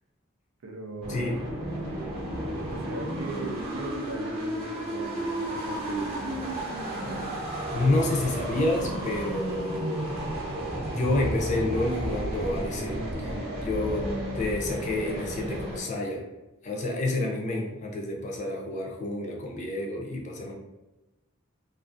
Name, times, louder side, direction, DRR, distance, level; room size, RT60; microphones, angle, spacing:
voice 1, 0.6-1.4 2.7-6.5, right 2 dB, 85° right, 3 dB, 0.5 m, -38 dB
sound 1, 1.0-15.8, right 1 dB, 30° right, 0.7 m, -32 dB
voice 2, 7.7-10.1 10.9-14.1 14.3-16.2 16.6-20.5, left 2 dB, 35° left, -1 dB, 0.4 m, -29 dB
2.4 x 2.4 x 2.4 m, 1.0 s
head